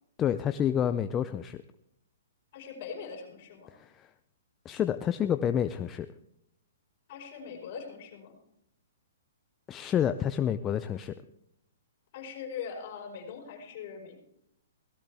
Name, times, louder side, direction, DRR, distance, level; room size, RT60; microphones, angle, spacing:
voice 1, 0.2-1.6 3.8-4.1 4.7-6.1 9.7-11.1, left 9 dB, 20° left, 10 dB, 0.4 m, -29 dB
voice 2, 2.5-3.7 7.1-8.4 12.1-14.2, left 6 dB, 45° left, 2 dB, 5.0 m, -41 dB
17.5 x 14.0 x 3.4 m, 0.79 s
hypercardioid pair, 150°, 0 cm